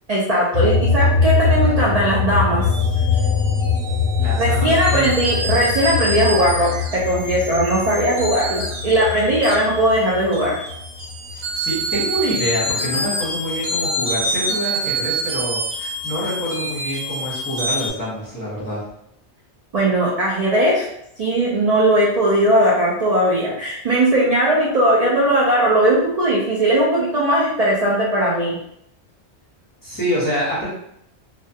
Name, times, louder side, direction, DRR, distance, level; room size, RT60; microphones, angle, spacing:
voice 1, 0.1-2.6 4.4-10.6 19.7-20.9 21.2-28.6, right 1 dB, 55° right, -5 dB, 0.4 m, -18 dB
sound 1, 0.5-11.4 11.8-13.2, left 5 dB, 70° left, 0.8 m, -22 dB
sound 2, 2.6-17.9, right 1 dB, 80° right, 1.2 m, -27 dB
voice 2, 4.2-5.1 11.3-18.8 29.8-30.7, equal, 20° left, -8 dB, 0.8 m, -26 dB
2.3 x 2.1 x 2.7 m, 0.75 s
omnidirectional pair, 1.1 m